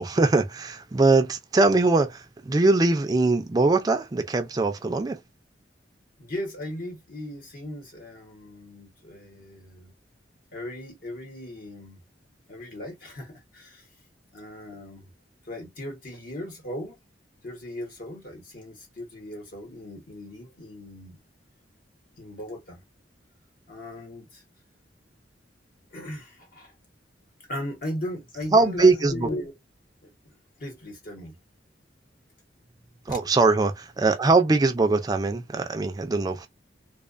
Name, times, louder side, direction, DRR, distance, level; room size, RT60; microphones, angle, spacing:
voice 1, 0.0-5.2 28.5-29.3 33.1-36.5, right 3 dB, 20° right, 0.3 m, -22 dB
voice 2, 6.2-9.9 10.5-12.0 12.5-13.8 14.3-15.1 15.5-17.0 17.4-21.2 22.2-22.8 23.7-24.4 25.9-26.7 27.5-29.5 30.0-30.1 30.6-31.3 33.1-33.2, left 1 dB, 50° left, 1.1 m, -37 dB
2.3 x 2.3 x 2.5 m
head